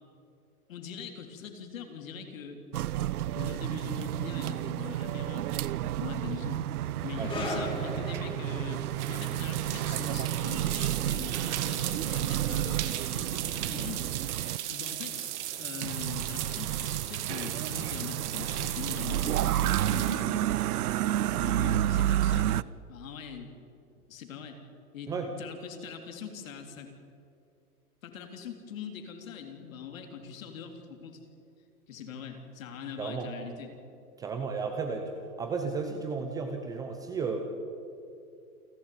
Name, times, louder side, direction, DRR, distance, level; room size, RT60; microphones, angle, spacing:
voice 1, 0.7-2.6 3.3-6.6 7.0-12.8 13.1-14.1 14.7-15.3 15.6-20.8 21.3-22.6 22.9-23.6 24.1-24.6 24.9-25.1 25.4-26.9 28.0-31.2 31.9-33.7, left 7 dB, 60° left, 5 dB, 3.6 m, -42 dB
sound 1, 2.7-14.6 15.8-22.6, right 13 dB, 70° right, 0.6 m, -31 dB
sound 2, 7.2-14.2 14.5-14.7 15.5-15.6, left 2 dB, 10° left, 2.8 m, -41 dB
sound 3, 8.2-21.4, right 12 dB, 50° right, 2.0 m, -37 dB
voice 2, 33.0-33.3 34.2-37.4, right 4 dB, 10° right, 5 dB, 0.6 m, -33 dB
28.5 x 11.5 x 9.4 m, 2.6 s
hypercardioid pair, 155°, 45 cm